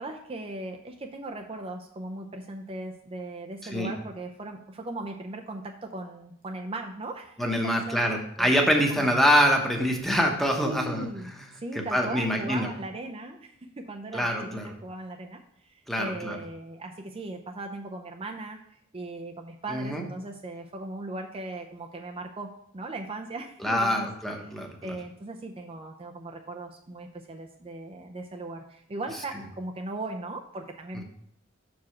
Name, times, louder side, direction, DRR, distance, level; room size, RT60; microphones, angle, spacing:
voice 1, 0.0-8.0 8.4-8.6 8.9-9.1 10.6-11.3 11.6-24.1 24.4-31.0, right 2 dB, 25° right, 3 dB, 0.5 m, -38 dB
voice 2, 7.4-11.1 11.9-12.7 14.1-14.7 15.9-16.4 19.7-20.0 23.6-24.9, equal, ahead, 1 dB, 1.0 m, -25 dB
6.1 x 4.8 x 5.8 m, 0.71 s
head